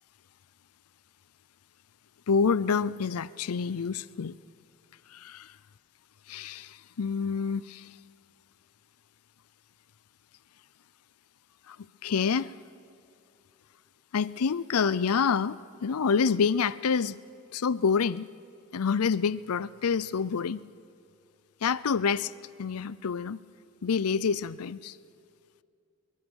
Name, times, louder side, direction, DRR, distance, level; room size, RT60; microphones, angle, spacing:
voice 1, 2.3-4.4 5.1-5.5 6.3-7.9 11.7-11.8 12.0-12.5 14.1-17.2 17.5-18.3 18.7-20.6 21.6-22.3 22.6-23.4 23.8-25.0, left 6 dB, 85° left, 0.5 m, -27 dB
23.5 x 23.0 x 6.4 m
head